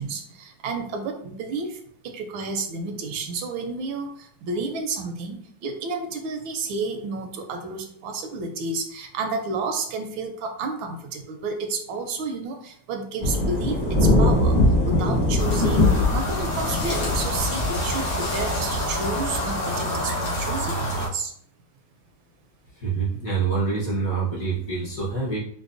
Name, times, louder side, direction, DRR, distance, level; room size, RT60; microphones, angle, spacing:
voice 1, 0.0-1.8 2.0-4.1 4.4-5.4 5.6-13.8 14.2-14.6 14.9-21.3, right 3 dB, 80° right, 4 dB, 1.3 m, -31 dB
Thunder / Rain, 13.2-19.5, left 1 dB, 35° left, 0.8 m, -21 dB
sound 1, 15.4-21.1, equal, 85° left, 1.8 m, -27 dB
voice 2, 22.8-25.4, right 4 dB, 50° left, -5 dB, 1.2 m, -26 dB
5.3 x 2.1 x 2.5 m, 0.64 s
omnidirectional pair, 2.2 m